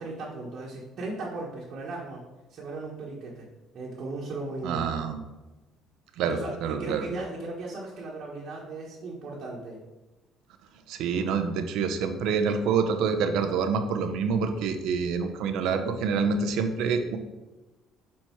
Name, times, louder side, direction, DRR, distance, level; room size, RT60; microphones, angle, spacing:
voice 1, 0.0-2.2 2.5-3.5 3.7-4.8 6.2-9.8, right 2 dB, 50° right, -4 dB, 1.3 m, -37 dB
voice 2, 4.6-5.2 6.2-7.1 10.9-17.2, right 5 dB, 75° right, 7 dB, 0.8 m, -27 dB
6.3 x 4.2 x 4.6 m, 1.1 s
cardioid pair, 125°, 0 cm